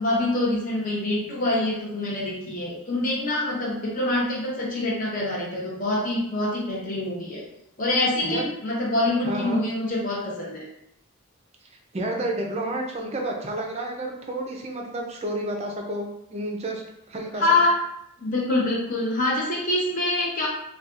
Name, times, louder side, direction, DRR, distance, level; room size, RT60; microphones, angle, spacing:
voice 1, 0.0-7.4 7.8-10.7 17.3-17.7 18.2-20.5, left 2 dB, 35° left, -4 dB, 0.7 m, -25 dB
voice 2, 9.2-9.6 11.9-17.6, right 1 dB, 30° right, 1 dB, 0.4 m, -30 dB
4.0 x 2.3 x 2.4 m, 0.79 s
head